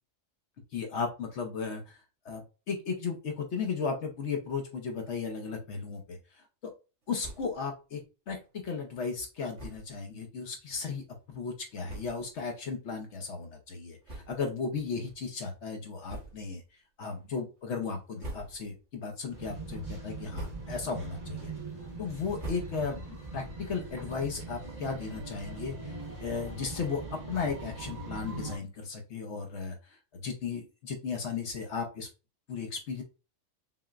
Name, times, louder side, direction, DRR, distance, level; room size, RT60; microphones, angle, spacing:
voice 1, 0.7-2.0 2.2-6.2 7.1-8.0 8.3-16.6 17.0-21.5 22.0-27.0 27.3-29.8 30.1-32.1 32.5-33.0, left 5 dB, 65° left, 3 dB, 1.0 m, -35 dB
sound 1, 7.2-7.7 8.0-8.1 8.4-8.5 9.5-10.0 10.7-10.8 11.5-11.6 11.8-12.4 12.9-13.1 14.0-14.7 15.0-15.2 16.0-16.6 17.1-17.5 18.0-18.9 19.2-19.7 20.1-20.9 21.3-23.1, right 1 dB, 60° right, 1.7 m, -45 dB
sound 2, 19.3-28.6, right 2 dB, 30° right, 1.2 m, -41 dB
5.6 x 2.1 x 2.3 m, 0.30 s
omnidirectional pair, 1.3 m